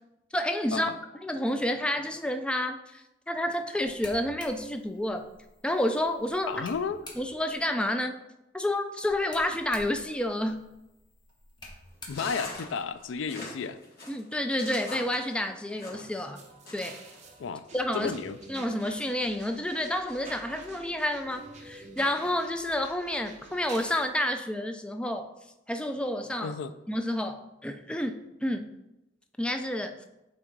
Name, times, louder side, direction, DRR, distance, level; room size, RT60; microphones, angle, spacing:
voice 1, 0.3-0.9 1.2-5.3 5.6-6.6 7.2-8.2 8.5-10.6 14.1-16.4 16.7-17.0 17.7-18.1 18.5-25.3 25.7-26.5 26.9-28.7 29.4-30.0, left 1 dB, 5° left, 7 dB, 0.3 m, -30 dB
sound 1, 3.8-7.6 9.0-13.2, left 1 dB, 25° left, 1.1 m, -50 dB
voice 2, 6.5-7.0 12.1-13.8 17.4-17.6 17.9-18.4 26.4-26.7, left 6 dB, 75° left, 13 dB, 0.4 m, -32 dB
sound 2, 12.1-16.2 16.7-17.2, left 2 dB, 55° left, 2.0 m, -42 dB
sound 3, 16.3-24.1, right 3 dB, 35° right, 0.9 m, -48 dB
8.7 x 3.5 x 3.9 m, 0.94 s
head